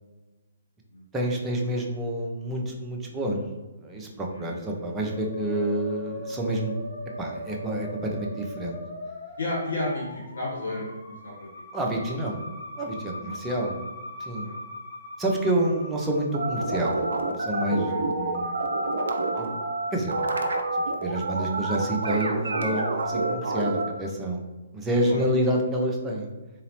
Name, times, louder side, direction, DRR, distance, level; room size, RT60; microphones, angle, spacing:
voice 1, 1.1-3.4 3.8-6.8 7.2-8.8 11.7-12.4 12.8-13.8 14.2-14.5 15.2-18.6 19.4-19.6 19.9-20.1 21.0-24.4 24.7-26.3, right 1 dB, 10° right, -1 dB, 0.5 m, -28 dB
voice 2, 4.3-4.6 9.4-11.5 13.2-13.4 14.4-14.5 17.8-18.5 25.0-25.3, left 2 dB, 65° left, -7 dB, 1.2 m, -33 dB
Musical instrument, 5.0-16.8, left 1 dB, 45° left, 0.7 m, -40 dB
sound 1, 16.3-23.9, right 2 dB, 60° right, 0.4 m, -28 dB
3.9 x 2.8 x 3.0 m, 1.1 s
figure-of-eight pair, 130°, 0 cm